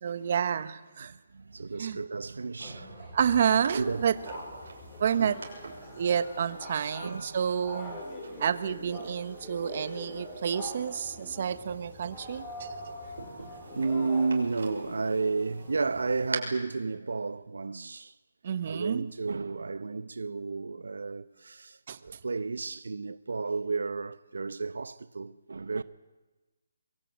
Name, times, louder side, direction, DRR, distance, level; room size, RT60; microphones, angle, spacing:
voice 1, 0.0-1.2 1.8-2.0 3.1-4.1 5.0-5.4 5.9-8.0 8.4-12.7 18.4-19.1 21.9-22.0, right 8 dB, 40° right, 1.3 m, -29 dB
voice 2, 1.1-3.2 3.7-4.1 5.1-5.3 7.0-7.4 13.4-18.2 18.7-25.8, right 4 dB, 85° right, 0.9 m, -32 dB
sound 1, 2.6-16.3, left 1 dB, 15° left, 6.7 m, -44 dB
sound 2, 3.6-16.4, right 4 dB, 70° right, 6.3 m, -47 dB
23.0 x 23.0 x 9.0 m
hypercardioid pair, 170°, 0 cm